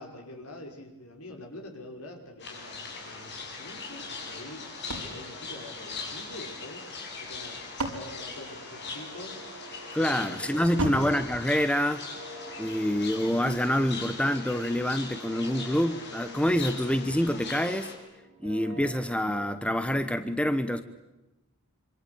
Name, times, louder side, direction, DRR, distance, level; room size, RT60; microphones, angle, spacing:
voice 1, 0.0-6.9 7.2-9.4 10.0-10.9, left 1 dB, 70° left, 4 dB, 5.4 m, -45 dB
sound 1, 2.4-17.9, left 4 dB, 50° left, 7.6 m, -40 dB
sound 2, 4.9-6.4 7.3-9.3 10.8-12.4, right 1 dB, 75° right, 5.1 m, -37 dB
sound 3, 8.4-19.4, left 1 dB, 30° right, 6.3 m, -49 dB
voice 2, 9.9-12.1 12.6-17.9 18.4-20.8, equal, 5° left, 10 dB, 1.0 m, -26 dB
26.0 x 26.0 x 8.6 m, 1.0 s
head